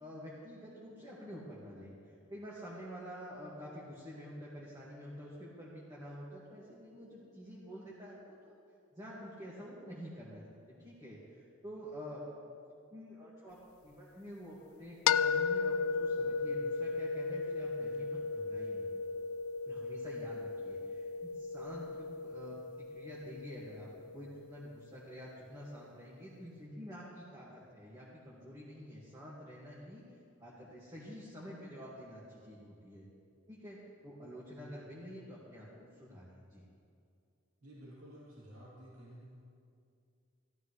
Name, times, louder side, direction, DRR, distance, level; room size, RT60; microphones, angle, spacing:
voice 1, 0.0-8.6 8.9-12.2 12.9-13.6 13.8-18.9 19.7-33.1 33.5-36.6, equal, 20° right, -7 dB, 1.8 m, -48 dB
sound 1, 15.1-24.9, left 5 dB, 80° left, 0.3 m, -35 dB
voice 2, 37.6-39.3, right 1 dB, 80° right, -7 dB, 2.9 m, -52 dB
15.5 x 12.5 x 3.2 m, 2.4 s
head